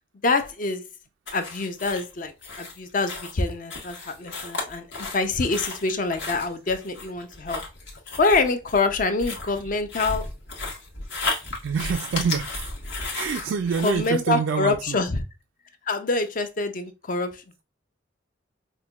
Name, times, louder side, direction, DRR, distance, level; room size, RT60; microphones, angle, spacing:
voice 1, 0.2-0.8 1.3-7.6 8.2-10.2 13.8-15.2 15.9-17.6, left 3 dB, 45° left, 0.5 m, -25 dB
sound 1, 1.3-14.1, left 3 dB, 65° left, 1.2 m, -34 dB
voice 2, 11.6-12.7 13.1-15.1, right 6 dB, 70° right, 0.3 m, -27 dB
5.3 x 2.2 x 2.3 m
head